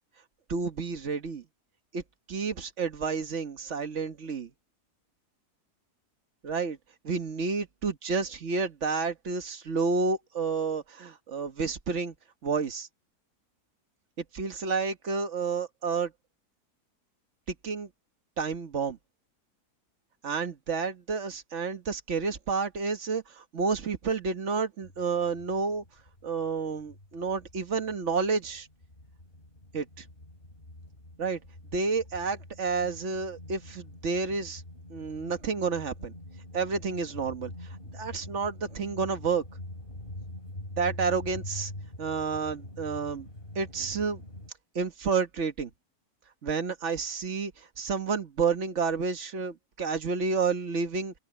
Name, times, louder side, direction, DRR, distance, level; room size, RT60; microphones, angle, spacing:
voice 1, 0.5-1.4 1.9-2.0 2.3-4.5 6.4-6.8 7.0-12.1 12.4-12.9 14.3-16.1 17.5-17.9 18.4-19.0 20.2-25.8 26.2-28.7 29.7-30.0 31.2-31.4 31.7-34.6 34.9-36.1 36.5-37.5 37.9-39.4 40.8-41.7 42.0-43.3 43.5-44.2 44.7-45.7 46.4-51.2, right 5 dB, 50° right, 1.5 m, -30 dB
sound 1, 24.8-26.5 26.7-44.5, left 1 dB, 35° left, 4.8 m, -45 dB
open air
omnidirectional pair, 1.7 m